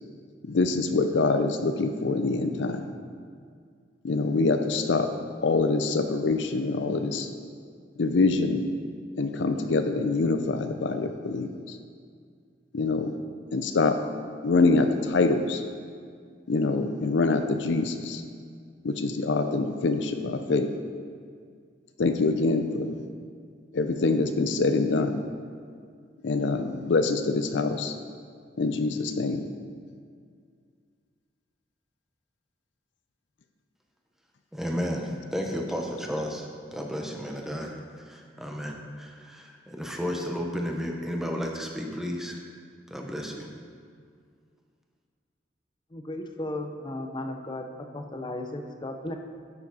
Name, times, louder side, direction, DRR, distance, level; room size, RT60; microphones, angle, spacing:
voice 1, 0.4-2.9 4.0-7.3 8.0-8.7 9.2-11.8 12.7-13.2 13.5-14.0 14.4-15.6 16.5-18.2 18.8-20.7 22.0-23.0 23.7-25.2 26.2-27.9 28.6-29.5, left 3 dB, 70° left, 8 dB, 0.5 m, -25 dB
voice 2, 34.5-42.4 42.9-43.5, equal, ahead, 1 dB, 0.9 m, -33 dB
voice 3, 45.9-47.7 47.9-49.2, left 1 dB, 25° left, 5 dB, 0.6 m, -35 dB
10.5 x 7.0 x 4.1 m, 2.1 s
head